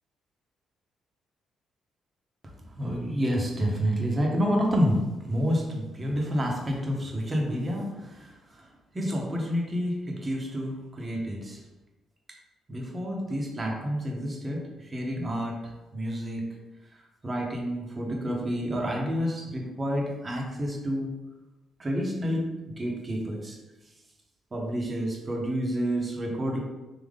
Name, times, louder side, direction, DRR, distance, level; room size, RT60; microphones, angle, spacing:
voice 1, 2.7-8.7 8.9-11.6 12.7-16.5 17.2-21.1 21.8-23.6 24.5-26.6, equal, 30° right, 0 dB, 1.0 m, -29 dB
3.6 x 2.9 x 3.6 m, 1.1 s
cardioid pair, 90°, 0 cm